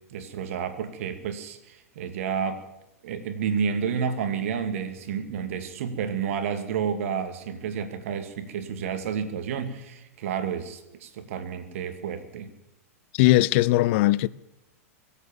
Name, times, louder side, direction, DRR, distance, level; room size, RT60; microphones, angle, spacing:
voice 1, 0.1-2.6 3.0-12.5, right 7 dB, 65° right, 2.4 m, -30 dB
voice 2, 13.1-14.3, left 17 dB, 50° left, 0.6 m, -19 dB
24.0 x 8.4 x 7.1 m
hypercardioid pair, 105°, 8 cm